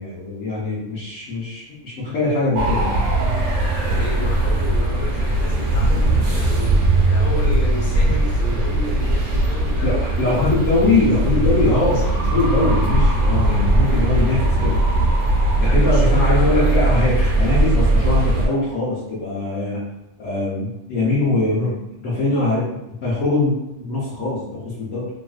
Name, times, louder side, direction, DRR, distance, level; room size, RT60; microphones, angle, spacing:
voice 1, 0.0-3.0 9.8-14.8 15.6-19.8 20.2-25.1, left 2 dB, 85° left, -9 dB, 1.2 m, -22 dB
sound 1, 2.6-18.5, right 1 dB, 80° right, 1.1 m, -19 dB
voice 2, 3.9-10.4 11.3-12.1 15.6-16.9, left 1 dB, 40° left, -6 dB, 0.8 m, -32 dB
3.0 x 2.5 x 2.4 m, 0.89 s
omnidirectional pair, 1.3 m